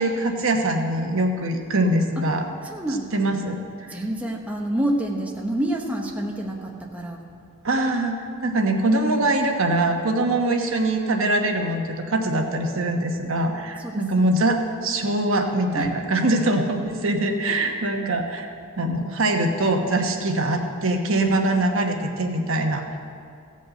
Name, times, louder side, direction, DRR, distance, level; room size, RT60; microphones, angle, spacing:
voice 1, 0.0-2.4 3.1-3.6 7.6-8.1 8.4-18.5 18.8-23.0, right 2 dB, 60° right, 3 dB, 1.1 m, -23 dB
voice 2, 2.6-3.2 3.9-7.2 13.8-14.1 15.7-15.9, right 1 dB, 5° right, -1 dB, 0.8 m, -28 dB
15.5 x 5.4 x 7.6 m, 2.3 s
head